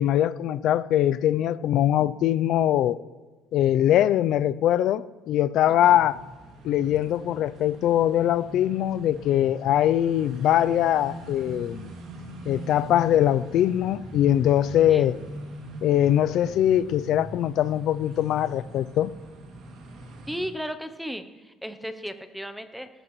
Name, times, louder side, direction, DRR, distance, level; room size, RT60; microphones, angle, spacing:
voice 1, 0.0-3.0 3.5-6.2 6.6-11.9 12.5-15.2 15.8-19.1, left 11 dB, 55° left, 0.4 m, -22 dB
voice 2, 5.7-6.0 14.9-15.1 20.3-22.9, equal, ahead, 0.7 m, -35 dB
sound 1, 5.8-20.5, right 1 dB, 55° right, 2.3 m, -41 dB
19.0 x 13.5 x 3.1 m
cardioid pair, 150°, 0 cm